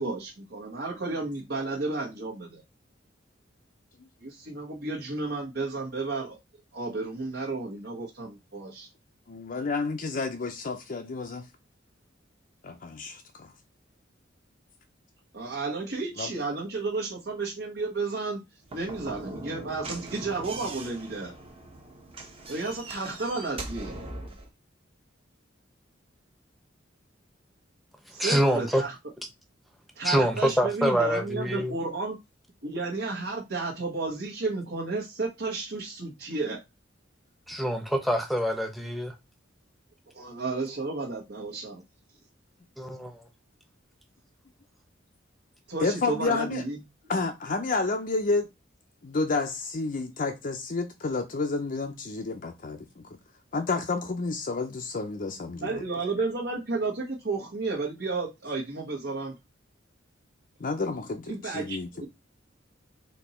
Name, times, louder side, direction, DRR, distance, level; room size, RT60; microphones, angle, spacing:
voice 1, 0.0-2.6 4.2-6.4 6.7-8.9 15.3-18.4 18.7-21.3 22.5-23.9 28.1-29.0 29.9-32.2 32.6-36.6 40.1-41.8 45.7-46.8 55.6-59.4 61.2-62.1, right 3 dB, 60° right, 1.2 m, -32 dB
voice 2, 9.3-11.5 12.6-13.5 16.2-16.3 37.5-37.6 45.8-46.6 47.1-48.5 49.0-53.1 53.5-55.8 60.6-62.1, left 3 dB, 45° left, 0.5 m, -30 dB
Slam / Knock, 18.6-24.5, right 2 dB, 30° right, 1.0 m, -41 dB
voice 3, 28.2-28.8 30.0-31.7 37.5-39.1 42.8-43.2, equal, ahead, 0.9 m, -25 dB
4.3 x 2.9 x 4.2 m
head